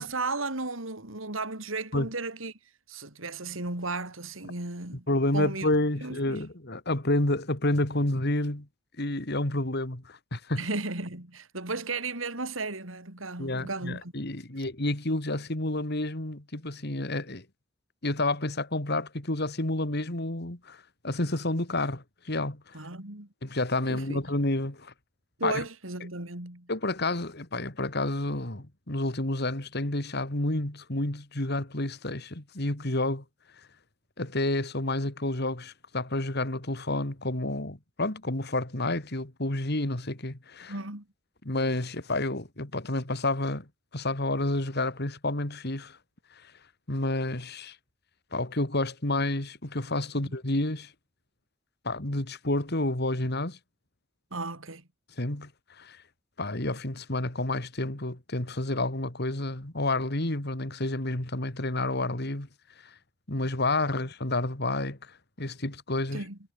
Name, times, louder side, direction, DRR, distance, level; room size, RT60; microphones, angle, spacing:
voice 1, 0.0-2.5 2.9-5.1 5.3-5.7 6.0-6.4 10.6-14.1 22.7-23.3 23.9-24.3 25.4-26.7 40.7-41.0 50.2-50.3 54.3-54.8 66.1-66.4, right 3 dB, 80° right, 4.6 m, -35 dB
voice 2, 5.1-8.7 9.0-10.7 13.4-17.4 18.0-22.8 23.4-24.9 25.4-25.5 26.7-33.2 34.2-40.7 41.4-43.6 43.9-46.0 46.9-47.8 48.3-50.9 51.8-53.6 55.2-55.5 55.8-56.0 56.4-62.5 63.3-65.0 65.4-66.2, left 2 dB, 55° left, 3.0 m, -29 dB
head